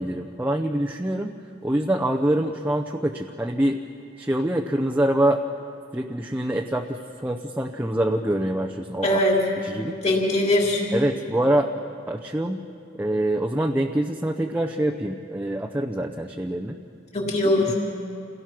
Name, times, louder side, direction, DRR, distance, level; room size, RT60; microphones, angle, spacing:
voice 1, 0.0-1.3 1.6-3.8 4.2-5.4 5.9-9.2 9.6-10.0 10.9-11.7 12.1-12.6 13.0-16.8, right 1 dB, 10° right, 1 dB, 0.7 m, -25 dB
voice 2, 9.0-9.5 10.0-10.8 17.1-17.7, left 1 dB, 35° left, -2 dB, 3.7 m, -21 dB
28.0 x 17.5 x 6.0 m, 2.5 s
head